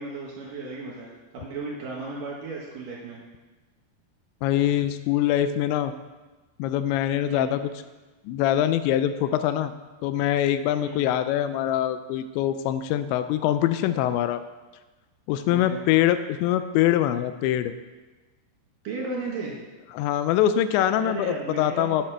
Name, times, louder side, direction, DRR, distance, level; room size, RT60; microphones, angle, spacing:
voice 1, 0.0-3.2 7.3-7.6 10.8-11.1 15.5-15.8 18.8-19.5 21.0-21.9, right 3 dB, 65° right, -3 dB, 2.3 m, -35 dB
voice 2, 4.4-5.9 6.6-7.6 8.3-9.7 10.0-14.4 15.3-17.7 19.9-22.0, left 11 dB, 85° left, 11 dB, 2.8 m, -23 dB
11.5 x 8.8 x 4.5 m, 1.2 s
omnidirectional pair, 5.2 m